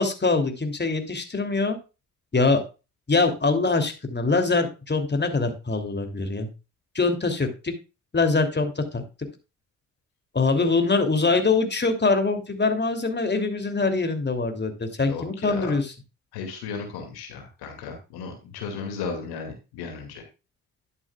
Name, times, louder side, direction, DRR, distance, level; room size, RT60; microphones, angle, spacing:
voice 1, 0.0-1.8 2.3-2.6 3.1-6.5 6.9-7.7 8.1-9.0 10.3-15.9, left 3 dB, 30° left, 6 dB, 2.9 m, -23 dB
voice 2, 15.0-15.8 16.3-20.2, left 5 dB, 85° left, 4 dB, 2.4 m, -35 dB
11.0 x 8.9 x 2.4 m, 0.30 s
hypercardioid pair, 45°, 37 cm